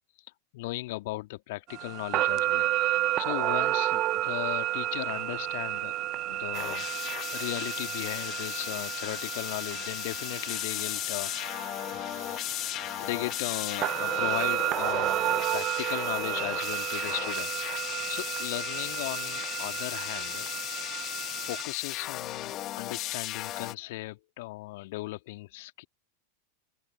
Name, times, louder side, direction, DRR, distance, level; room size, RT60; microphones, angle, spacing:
voice 1, 0.5-5.9 6.2-6.9 7.3-17.7 18.1-20.5 20.9-21.1 21.4-25.8, left 20 dB, 50° left, 2.4 m, -37 dB
sound 1, 1.7-21.6, right 15 dB, 35° right, 1.0 m, -32 dB
sound 2, 6.5-23.7, left 14 dB, 35° left, 1.6 m, -36 dB
open air
figure-of-eight pair, 90°, 0 cm